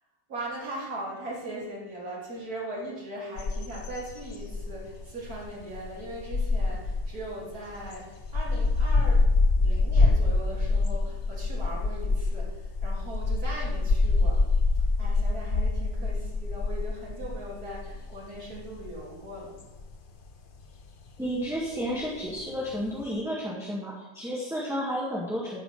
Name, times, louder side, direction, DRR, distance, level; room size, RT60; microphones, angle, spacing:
voice 1, 0.3-9.2 9.6-14.5 15.0-19.6, right 1 dB, 50° right, -5 dB, 3.6 m, -39 dB
sound 1, 3.4-23.1, left 3 dB, 60° left, 0.5 m, -26 dB
voice 2, 21.2-25.6, equal, ahead, -6 dB, 1.7 m, -32 dB
14.0 x 4.9 x 6.7 m, 1.2 s
omnidirectional pair, 2.0 m